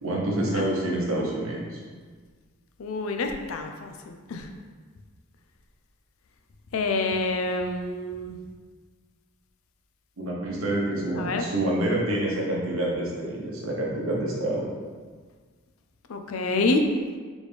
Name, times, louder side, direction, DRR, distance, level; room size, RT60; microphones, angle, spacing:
voice 1, 0.0-1.8 10.2-14.7, right 1 dB, 75° right, -3 dB, 1.0 m, -27 dB
voice 2, 2.8-3.9 4.3-4.5 6.7-8.4 11.2-11.5 16.1-16.8, left 3 dB, 75° left, 5 dB, 0.4 m, -27 dB
4.1 x 3.1 x 3.4 m, 1.5 s
head